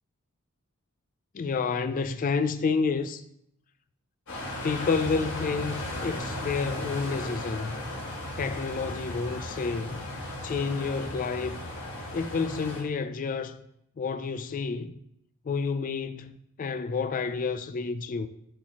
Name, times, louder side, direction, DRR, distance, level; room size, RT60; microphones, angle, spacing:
voice 1, 1.3-3.2 4.6-7.7 8.4-10.0 10.4-11.6 12.1-13.7 14.0-14.9 15.5-18.3, left 4 dB, 35° left, 0.3 m, -29 dB
sound 1, 4.3-12.8, left 1 dB, 75° left, 2.9 m, -36 dB
11.0 x 4.4 x 2.9 m
head